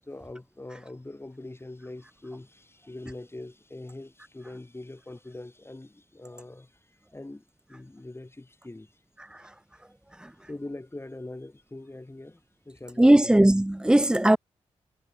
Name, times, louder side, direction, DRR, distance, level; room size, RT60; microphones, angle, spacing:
voice 1, 0.1-8.9 10.4-13.4, left 2 dB, 20° left, 2.7 m, -43 dB
voice 2, 13.0-14.4, right 1 dB, 5° right, 0.3 m, -18 dB
supercardioid pair, 50°, 13 cm